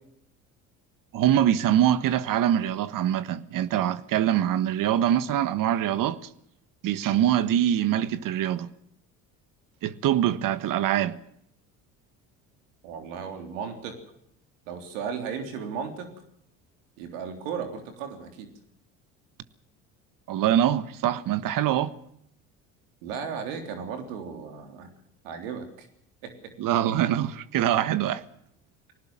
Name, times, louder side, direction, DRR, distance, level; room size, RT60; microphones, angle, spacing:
voice 1, 1.1-6.2 6.8-8.7 9.8-11.2 20.3-21.9 26.6-28.2, right 11 dB, 55° right, 1.4 m, -24 dB
voice 2, 12.8-14.0 14.7-16.1 17.0-18.5 23.0-24.9 25.2-25.9 26.2-26.5, right 6 dB, 80° right, 3.6 m, -35 dB
20.5 x 18.5 x 7.5 m
hypercardioid pair, 70°, 38 cm